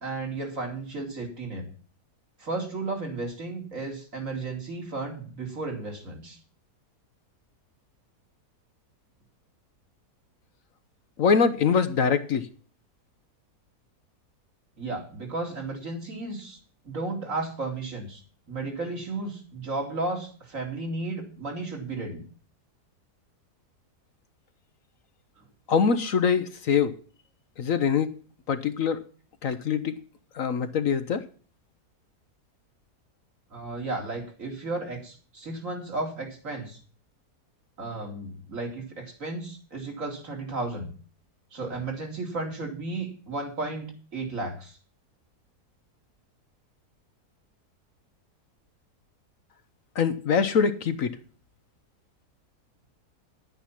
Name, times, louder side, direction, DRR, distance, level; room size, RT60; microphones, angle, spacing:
voice 1, 0.0-1.6 2.4-6.4 14.8-16.6 16.8-18.2 18.5-22.2 33.5-36.8 37.8-40.9 41.5-44.8, right 3 dB, 55° right, 3.1 m, -34 dB
voice 2, 11.2-12.5 25.7-26.9 27.6-28.1 28.5-29.0 29.4-29.9 30.4-31.2 50.0-51.1, left 6 dB, 60° left, 1.1 m, -23 dB
11.5 x 9.3 x 5.7 m
omnidirectional pair, 1.7 m